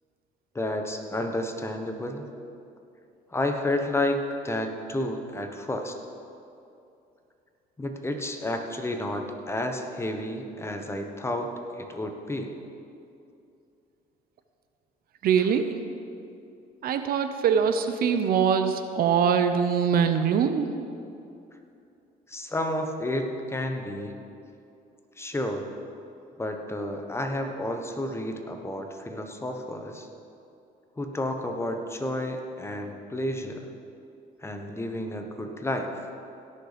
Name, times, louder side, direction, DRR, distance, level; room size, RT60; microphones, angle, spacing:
voice 1, 0.5-2.3 3.3-6.0 7.8-12.5 22.3-24.2 25.2-25.7 26.4-30.1 31.0-33.7 34.4-36.1, left 1 dB, 15° left, 4 dB, 1.1 m, -31 dB
voice 2, 15.2-15.7 16.8-20.7, right 7 dB, 60° right, 8 dB, 0.8 m, -23 dB
17.0 x 6.5 x 5.2 m, 2.6 s
cardioid pair, 110°, 17 cm